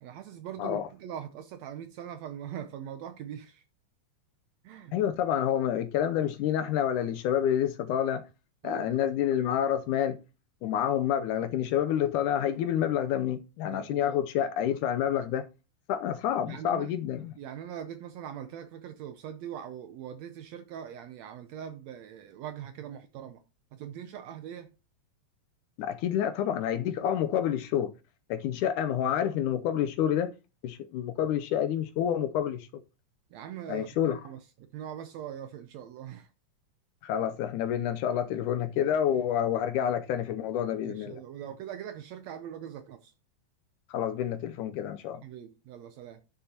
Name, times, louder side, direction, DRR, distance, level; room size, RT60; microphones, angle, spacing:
voice 1, 0.0-3.6 4.6-4.9 8.6-9.2 13.7-14.2 16.4-16.9 17.4-23.4 23.7-24.7 33.3-36.3 40.8-43.1 45.2-46.2, right 9 dB, 85° right, 1.5 m, -42 dB
voice 2, 4.9-8.3 8.6-10.2 10.6-15.5 15.9-17.4 25.8-27.9 28.3-30.3 30.6-32.7 33.7-34.2 37.0-41.2 43.9-45.2, left 10 dB, 80° left, 2.0 m, -28 dB
11.0 x 6.6 x 2.8 m
omnidirectional pair, 3.9 m